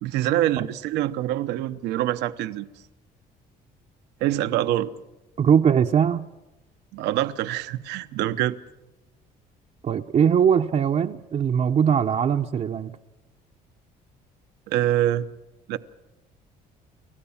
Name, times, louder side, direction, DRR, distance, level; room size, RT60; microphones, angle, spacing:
voice 1, 0.0-2.7 4.2-4.9 6.9-8.5 14.7-15.3 15.7-15.8, right 13 dB, 90° right, 1.0 m, -25 dB
voice 2, 5.4-6.3 9.8-12.9, right 8 dB, 40° right, 0.8 m, -21 dB
29.5 x 14.5 x 7.2 m
cardioid pair, 110°, 17 cm